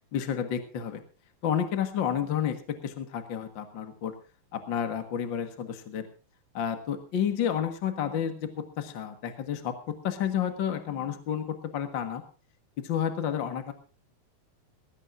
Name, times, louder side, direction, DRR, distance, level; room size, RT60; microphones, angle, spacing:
voice 1, 0.1-1.0 1.4-4.1 4.5-6.1 6.5-12.2 12.8-13.7, left 9 dB, 50° left, 7 dB, 1.6 m, -30 dB
20.0 x 16.5 x 2.6 m, 0.36 s
omnidirectional pair, 4.0 m